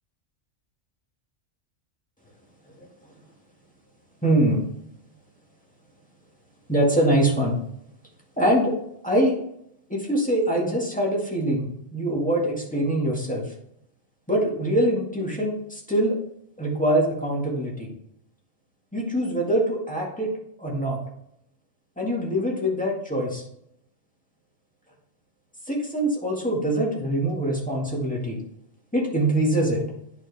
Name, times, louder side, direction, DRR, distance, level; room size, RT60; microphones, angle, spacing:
voice 1, 4.2-4.6 6.7-7.5 8.4-8.7 9.0-9.4 9.9-11.7 11.9-13.4 14.3-16.2 16.6-17.9 18.9-20.3 20.6-21.0 22.0-23.4 25.7-28.4 28.9-29.8, right 1 dB, 5° left, -3 dB, 1.8 m, -23 dB
9.6 x 4.6 x 3.4 m, 0.74 s
omnidirectional pair, 1.4 m